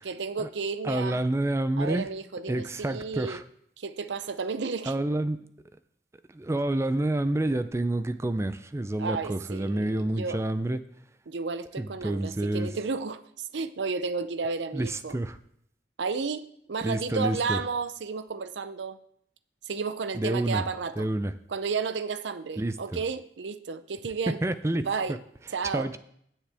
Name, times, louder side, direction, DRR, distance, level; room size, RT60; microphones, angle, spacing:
voice 1, 0.0-1.2 1.8-3.4 3.8-4.9 9.0-10.4 11.3-15.2 16.0-19.0 19.6-21.1 21.5-24.4 24.8-25.2 25.5-25.9, right 4 dB, 80° right, 0.6 m, -32 dB
voice 2, 0.8-2.1 2.5-3.4 4.9-5.4 6.3-10.8 11.8-12.7 14.7-15.4 16.8-17.6 20.1-20.6 21.0-21.3 22.6-22.7 24.3-24.8 25.7-26.0, right 1 dB, 15° right, 0.4 m, -28 dB
15.5 x 7.4 x 3.5 m
head